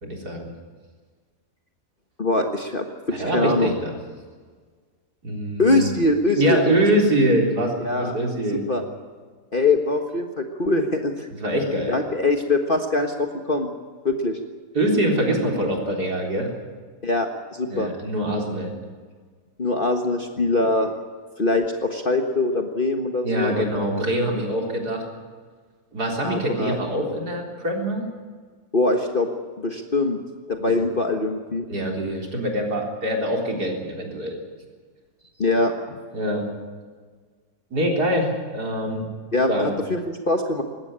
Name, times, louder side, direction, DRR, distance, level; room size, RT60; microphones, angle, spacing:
voice 1, 0.0-0.5 3.1-3.9 5.2-5.9 6.4-8.6 11.4-12.0 14.7-16.5 17.7-18.7 23.2-25.0 25.9-28.1 30.6-30.7 31.7-34.4 36.1-36.4 37.7-39.1 39.5-39.8, right 1 dB, 75° right, 1 dB, 4.3 m, -24 dB
voice 2, 2.2-2.8 3.3-3.7 5.6-6.6 7.8-8.1 8.5-8.8 9.5-11.3 11.9-13.1 13.4-13.7 14.0-14.4 17.0-17.9 19.6-20.9 21.4-23.9 26.2-26.8 28.7-29.3 29.6-30.2 30.5-31.7 35.4-36.0 39.3-40.0 40.3-40.6, left 2 dB, 35° left, 4 dB, 1.5 m, -22 dB
20.5 x 16.5 x 10.0 m, 1.6 s
omnidirectional pair, 1.7 m